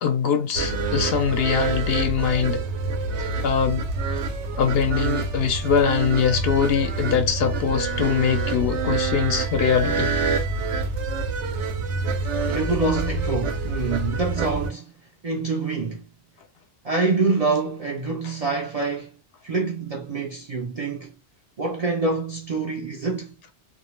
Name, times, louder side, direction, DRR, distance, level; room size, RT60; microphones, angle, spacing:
voice 1, 0.0-2.6 3.2-3.9 4.6-10.2, left 7 dB, 65° left, 0.7 m, -22 dB
sound 1, 0.5-14.7, right 3 dB, 85° right, 0.9 m, -26 dB
voice 2, 12.5-14.9 15.2-16.0 16.8-19.1 19.4-21.1 21.6-23.3, right 3 dB, 50° right, 0.4 m, -26 dB
2.3 x 2.1 x 3.0 m
omnidirectional pair, 1.2 m